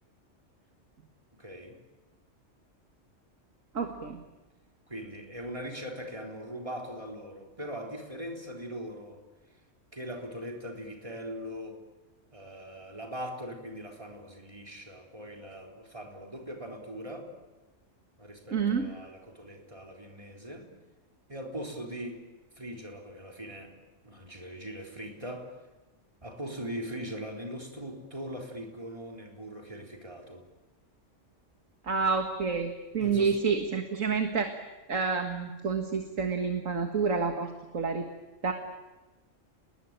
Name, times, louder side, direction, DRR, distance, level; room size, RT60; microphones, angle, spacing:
voice 1, 1.4-1.8 4.9-9.2 9.9-11.8 12.3-17.3 18.2-20.7 21.3-22.3 22.6-23.8 24.0-25.5 26.2-30.5 33.0-33.4, equal, 25° right, 1 dB, 3.9 m, -40 dB
voice 2, 3.7-4.2 18.5-18.9 31.8-34.5 34.9-38.1 38.4-38.5, right 5 dB, 85° right, 4 dB, 2.1 m, -29 dB
30.0 x 21.0 x 9.0 m, 1.1 s
omnidirectional pair, 1.3 m